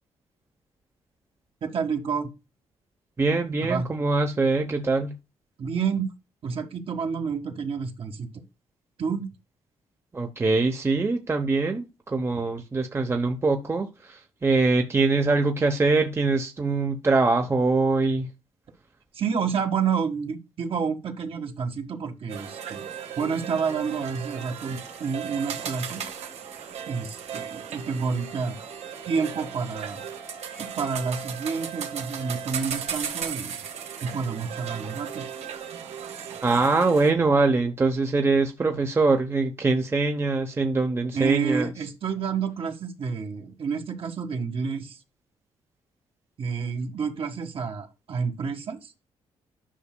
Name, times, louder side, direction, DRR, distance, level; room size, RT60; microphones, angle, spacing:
voice 1, 1.6-2.3 3.6-3.9 5.6-6.1 6.4-8.3 9.0-9.3 19.1-22.8 23.2-26.0 26.9-28.6 29.1-30.0 30.6-33.6 34.0-35.3 41.1-45.0 46.4-48.9, right 6 dB, 55° right, 1.6 m, -29 dB
voice 2, 3.2-5.2 10.1-18.3 36.4-41.7, right 3 dB, 25° right, 0.9 m, -23 dB
sound 1, 22.3-37.1, right 8 dB, 75° right, 1.5 m, -36 dB
sound 2, 28.3-34.3, right 1 dB, 15° left, 0.7 m, -51 dB
10.0 x 5.9 x 2.2 m
cardioid pair, 115°, 11 cm